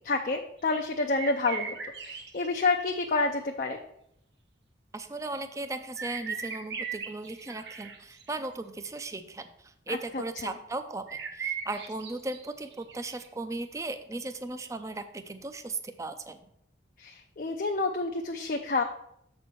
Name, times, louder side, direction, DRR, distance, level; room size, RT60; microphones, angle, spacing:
voice 1, 0.0-1.8 2.0-3.8 9.9-10.5 17.0-18.8, left 3 dB, 45° left, 3 dB, 0.5 m, -29 dB
sound 1, 0.6-0.7 1.2-3.2 5.3-8.5 11.1-13.3 14.5-14.6, right 6 dB, 65° right, 1.0 m, -38 dB
voice 2, 4.9-11.1 11.3-16.5, right 2 dB, 15° right, 9 dB, 0.4 m, -37 dB
7.1 x 4.4 x 6.0 m, 0.75 s
head